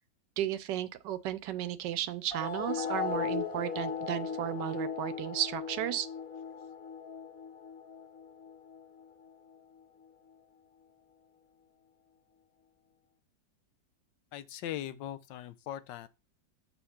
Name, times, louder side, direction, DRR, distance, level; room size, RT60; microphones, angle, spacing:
voice 1, 0.4-6.1, right 12 dB, 75° right, 1.2 m, -34 dB
sound 1, 2.3-9.3, left 6 dB, 30° left, 1.7 m, -37 dB
voice 2, 14.3-16.1, left 12 dB, 75° left, 1.2 m, -40 dB
7.0 x 4.3 x 5.7 m
omnidirectional pair, 2.0 m